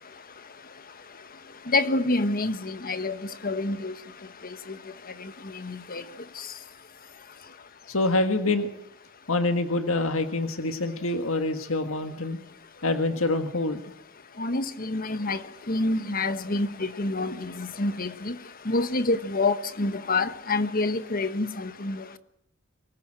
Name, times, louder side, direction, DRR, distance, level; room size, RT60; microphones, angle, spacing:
voice 1, 1.7-3.2 3.4-3.9 5.6-6.0 14.4-15.4 15.7-18.3 18.7-22.0, left 2 dB, 45° left, 1.4 m, -27 dB
voice 2, 7.9-8.7 9.3-12.4 12.8-13.9, left 2 dB, 80° left, 1.6 m, -26 dB
24.0 x 19.0 x 7.6 m
head